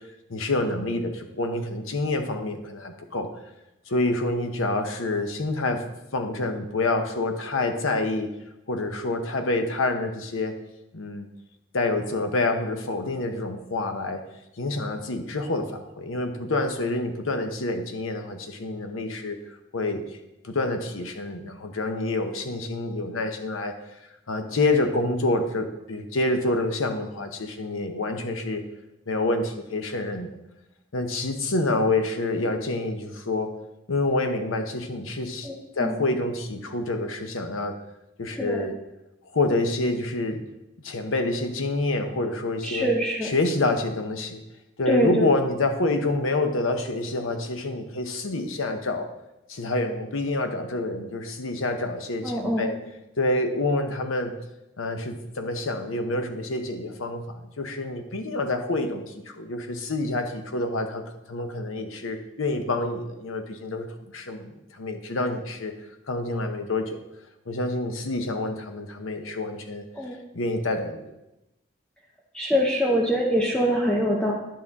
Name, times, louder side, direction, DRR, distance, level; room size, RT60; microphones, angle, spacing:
voice 1, 0.3-3.3 3.9-8.3 8.7-10.6 10.9-11.3 11.7-14.3 14.6-19.4 19.7-20.1 20.4-23.7 24.3-28.6 29.1-30.3 30.9-33.5 33.9-37.8 38.2-38.7 39.3-40.5 40.8-42.9 43.2-44.4 44.8-49.1 49.5-52.8 53.2-54.3 54.8-61.0 61.3-63.9 64.1-65.8 66.1-67.0 67.5-69.8 70.3-71.1, left 2 dB, 90° left, 6 dB, 0.9 m, -27 dB
voice 2, 35.4-36.0 38.3-38.6 42.6-43.3 44.9-45.3 52.2-52.7 69.9-70.2 72.3-74.3, equal, 5° left, -2 dB, 0.7 m, -24 dB
10.5 x 5.5 x 3.6 m, 0.92 s
head